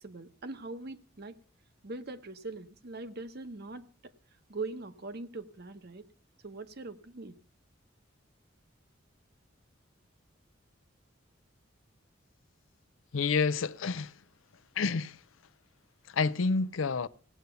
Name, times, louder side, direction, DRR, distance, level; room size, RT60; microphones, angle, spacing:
voice 1, 0.0-1.4 1.8-3.9 4.5-6.1 6.4-7.3, right 3 dB, 55° right, 1.0 m, -41 dB
voice 2, 13.1-14.1 14.8-15.2 16.1-17.1, left 4 dB, 90° left, 0.6 m, -29 dB
17.0 x 8.2 x 6.8 m
head